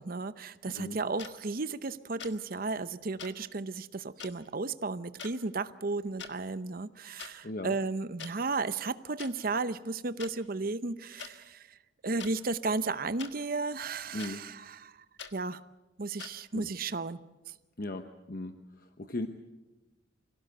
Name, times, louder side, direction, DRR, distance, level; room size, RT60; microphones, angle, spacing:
voice 1, 0.0-11.7 12.0-14.9 15.3-15.6 16.0-17.3, right 3 dB, 50° right, 0.8 m, -34 dB
sound 1, 1.2-1.3 2.2-2.4 3.2-3.3 4.2-4.3 5.2-5.3 6.1-6.3 7.2-7.3 8.2-8.3 9.2-9.3 10.2-10.3 11.2-11.3 12.2-12.3 13.2-13.3 14.2-14.3 15.2-15.3 16.2-16.3, left 7 dB, 65° left, 1.6 m, -43 dB
voice 2, 7.4-7.8 14.1-14.4 16.5-16.6 17.8-19.3, left 2 dB, 50° left, 1.0 m, -37 dB
25.0 x 17.0 x 7.9 m
head